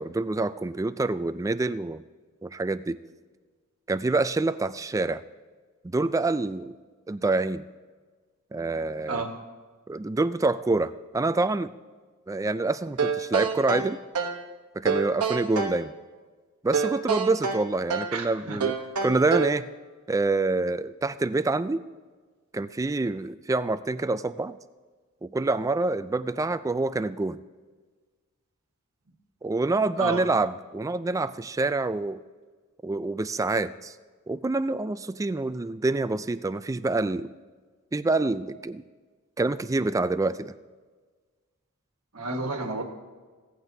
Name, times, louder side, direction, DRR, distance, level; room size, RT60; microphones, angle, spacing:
voice 1, 0.0-2.0 2.4-3.0 3.9-5.2 5.8-6.7 7.1-7.6 8.5-9.2 9.9-11.7 12.3-14.0 14.7-15.9 16.6-18.7 19.0-19.7 20.1-21.8 22.5-24.6 25.2-27.4 29.4-32.2 32.8-34.0 34.3-37.3 37.9-38.8 39.4-40.5, right 3 dB, 15° right, 14 dB, 0.3 m, -26 dB
sound 1, 13.0-14.4 14.8-15.8 16.7-18.2 18.6-19.6, right 5 dB, 85° right, 1.0 m, -27 dB
voice 2, 18.1-18.6 30.0-30.2 42.1-42.8, right 3 dB, 70° right, 4 dB, 1.5 m, -31 dB
16.5 x 14.5 x 2.7 m, 1.4 s
head